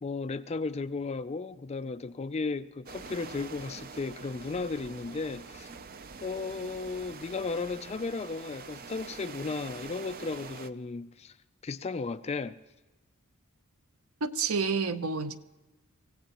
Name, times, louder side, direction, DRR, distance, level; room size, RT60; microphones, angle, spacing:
voice 1, 0.0-5.7 6.2-11.3 11.6-12.6, left 4 dB, 30° left, 0.4 m, -35 dB
sound 1, 2.9-10.7, right 5 dB, 40° right, 0.5 m, -45 dB
voice 2, 14.2-15.4, right 4 dB, 70° right, 0.7 m, -29 dB
25.5 x 16.0 x 3.0 m
head